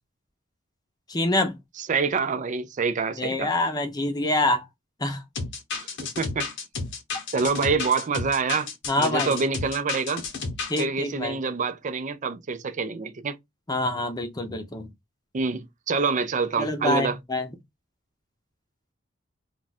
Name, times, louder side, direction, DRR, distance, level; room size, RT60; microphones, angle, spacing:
voice 1, 1.1-1.6 3.2-4.7 5.0-5.2 8.9-9.4 10.7-11.4 13.7-14.9 16.6-17.5, left 1 dB, 20° left, 0.7 m, -26 dB
voice 2, 1.9-3.5 5.7-6.5 7.3-8.7 9.0-10.2 10.8-13.4 15.3-17.2, right 4 dB, 40° right, 0.4 m, -26 dB
sound 1, 5.4-10.8, left 4 dB, 60° left, 0.8 m, -32 dB
2.4 x 2.3 x 4.0 m
head